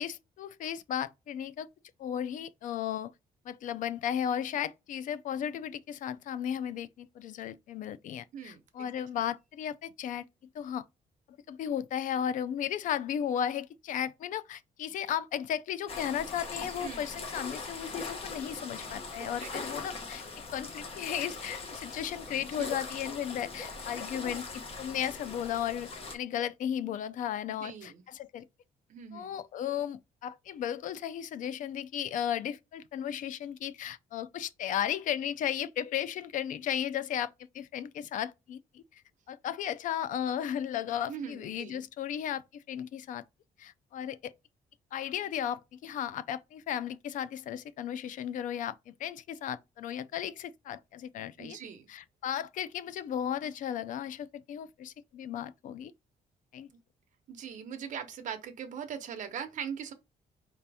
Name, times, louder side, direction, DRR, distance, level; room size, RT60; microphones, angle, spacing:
voice 1, 0.0-1.7 2.0-3.1 3.5-10.3 10.5-10.8 11.5-20.2 20.5-24.5 24.8-28.5 29.1-37.3 37.5-39.0 39.3-43.2 43.6-44.3 44.9-51.6 51.9-55.9 56.5-56.7, left 9 dB, 60° left, 0.4 m, -35 dB
voice 2, 8.3-8.9 16.8-17.0 19.2-19.5 22.6-22.7 27.6-28.0 28.9-29.4 41.1-41.8 51.4-51.8 57.3-59.9, right 8 dB, 55° right, 0.9 m, -40 dB
sound 1, 15.9-26.2, left 3 dB, 40° left, 1.0 m, -41 dB
5.0 x 2.8 x 3.4 m
cardioid pair, 175°, 15 cm